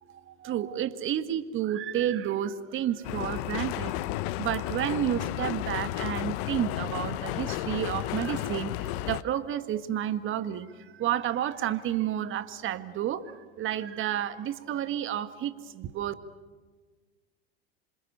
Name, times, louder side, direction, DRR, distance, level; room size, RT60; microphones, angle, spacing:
voice 1, 0.0-4.0 4.4-8.7 9.0-10.7 10.9-13.2 13.6-16.1, right 11 dB, 40° right, 12 dB, 1.7 m, -30 dB
sound 1, 3.0-9.2, left 16 dB, 60° left, 0.9 m, -33 dB
27.5 x 26.0 x 6.9 m, 1.4 s
hypercardioid pair, 80°, 30 cm